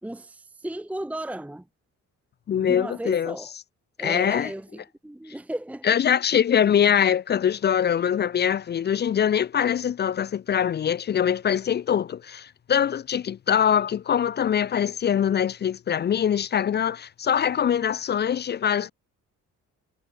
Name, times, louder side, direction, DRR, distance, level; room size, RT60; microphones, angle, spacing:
voice 1, 0.0-1.7 2.5-3.5 4.0-6.0, right 1 dB, 5° right, 1.0 m, -35 dB
voice 2, 2.5-3.3 4.0-4.5 5.8-18.9, left 8 dB, 35° left, 0.4 m, -23 dB
cardioid pair, 90°, 30 cm